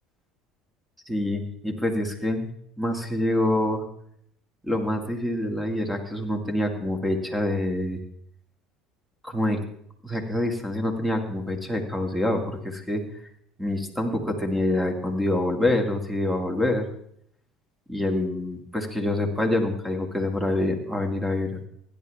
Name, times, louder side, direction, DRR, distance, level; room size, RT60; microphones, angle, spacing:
voice 1, 1.1-2.5 2.8-3.8 4.6-8.0 9.2-9.6 10.0-13.0 13.6-16.9 17.9-21.7, left 1 dB, 5° right, 4 dB, 2.1 m, -26 dB
16.0 x 10.5 x 3.4 m, 0.68 s
supercardioid pair, 105°, 0 cm